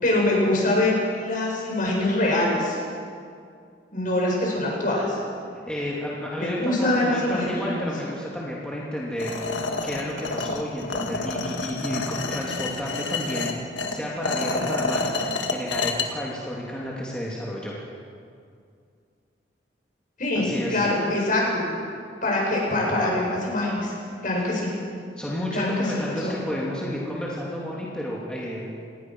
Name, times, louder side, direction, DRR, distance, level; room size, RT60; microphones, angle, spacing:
voice 1, 0.0-2.8 3.9-5.2 6.4-7.8 20.2-21.6 22.2-23.9 24.2-24.7 25.5-25.7 26.1-26.3, left 1 dB, 45° left, -2 dB, 7.2 m, -24 dB
voice 2, 5.7-9.3 9.8-15.1 15.5-17.7 20.3-20.9 25.1-28.7, left 1 dB, 5° left, -5 dB, 2.9 m, -31 dB
sound 1, 9.2-16.1, left 3 dB, 75° left, 1.9 m, -29 dB
28.0 x 19.5 x 6.3 m, 2.3 s
head